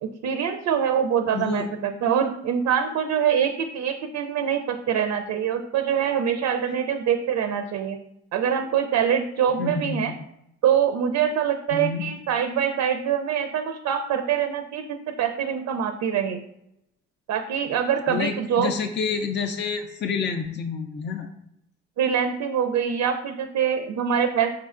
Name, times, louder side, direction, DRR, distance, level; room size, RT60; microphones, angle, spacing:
voice 1, 0.0-8.0 8.3-10.1 10.6-14.9 15.2-16.4 17.3-18.7 22.0-24.5, right 8 dB, 65° right, 6 dB, 0.5 m, -24 dB
voice 2, 1.3-1.7 9.6-10.0 11.7-12.0 18.1-21.3, left 5 dB, 40° left, 5 dB, 0.4 m, -28 dB
4.6 x 4.2 x 2.4 m, 0.80 s
cardioid pair, 90°, 30 cm